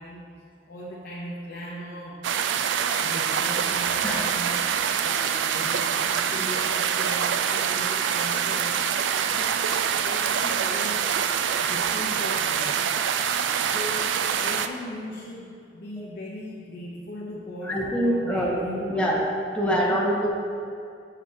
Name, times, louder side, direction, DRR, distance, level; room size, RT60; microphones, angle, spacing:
voice 1, 0.0-2.3 3.0-8.9 9.3-13.0 13.6-19.2 19.6-20.0, left 1 dB, 55° left, -4 dB, 0.7 m, -39 dB
sound 1, 2.2-14.7, right 8 dB, 90° right, 0.3 m, -25 dB
voice 2, 17.6-19.2 19.5-20.3, equal, 5° left, -4 dB, 0.9 m, -25 dB
7.3 x 6.6 x 2.8 m, 2.4 s
head